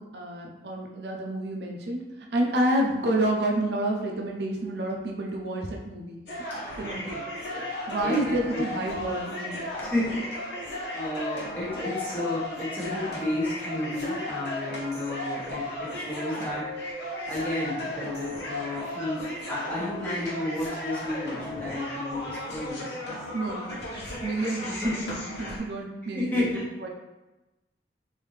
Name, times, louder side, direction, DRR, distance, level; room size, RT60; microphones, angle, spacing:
voice 1, 0.0-6.2 6.8-7.2 7.9-9.7 23.3-23.8 24.2-24.8 25.4-26.9, right 1 dB, 70° right, 0 dB, 0.5 m, -29 dB
sound 1, 6.3-25.6, left 1 dB, 75° left, 0.9 m, -35 dB
voice 2, 8.0-8.6 9.8-23.0 24.6-25.1 26.1-26.6, left 1 dB, 10° left, -9 dB, 1.1 m, -32 dB
3.4 x 2.7 x 3.1 m, 1.0 s
head